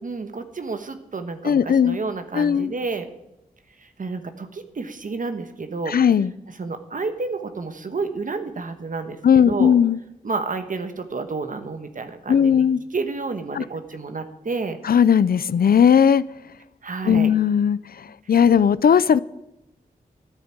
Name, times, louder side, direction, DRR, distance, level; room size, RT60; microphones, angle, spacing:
voice 1, 0.0-3.1 3.8-6.0 6.5-9.7 10.2-14.8 16.8-17.3, right 4 dB, 60° right, 8 dB, 1.3 m, -30 dB
voice 2, 1.4-2.0 2.3-2.7 5.9-6.3 9.2-10.0 12.3-12.8 13.5-13.6 14.8-16.2 17.1-17.8 18.3-19.2, left 8 dB, 75° left, 18 dB, 0.5 m, -17 dB
13.5 x 10.5 x 8.7 m, 0.87 s
wide cardioid pair, 90°, 15 cm